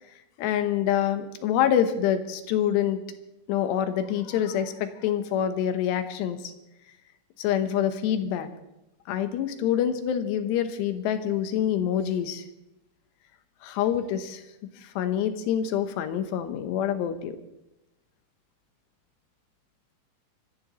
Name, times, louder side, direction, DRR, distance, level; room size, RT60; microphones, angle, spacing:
voice 1, 0.4-3.0 3.5-6.5 7.4-8.5 9.1-12.4 13.6-14.4 14.8-17.4, left 9 dB, 85° left, 8 dB, 3.2 m, -26 dB
25.5 x 14.5 x 3.1 m, 0.92 s
omnidirectional pair, 4.9 m